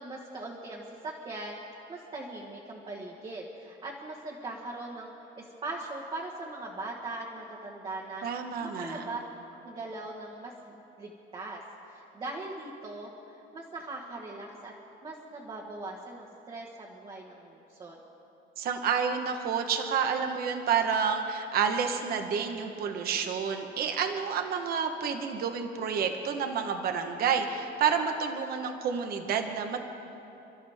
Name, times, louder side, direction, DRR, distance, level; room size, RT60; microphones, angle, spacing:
voice 1, 0.0-9.2 9.6-14.7 15.0-18.0, right 2 dB, 25° right, -2 dB, 1.4 m, -40 dB
voice 2, 8.2-9.0 18.6-29.8, right 6 dB, 50° right, 5 dB, 1.2 m, -29 dB
30.0 x 13.0 x 3.5 m, 2.9 s
cardioid pair, 170°, 20 cm